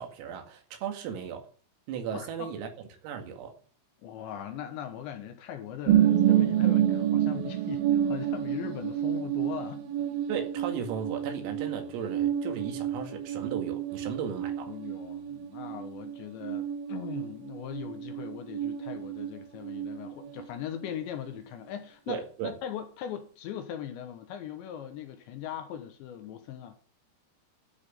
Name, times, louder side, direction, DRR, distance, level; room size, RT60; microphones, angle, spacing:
voice 1, 0.0-1.5 1.9-2.7 3.0-3.5 10.3-14.7 22.1-22.5, right 7 dB, 85° right, 4.8 m, -35 dB
voice 2, 2.1-2.5 4.0-9.9 14.7-26.8, left 10 dB, 70° left, 3.1 m, -40 dB
sound 1, 5.9-19.3 19.6-20.5 20.8-20.9, right 11 dB, 60° right, 2.8 m, -29 dB
12.0 x 6.2 x 9.4 m
omnidirectional pair, 5.9 m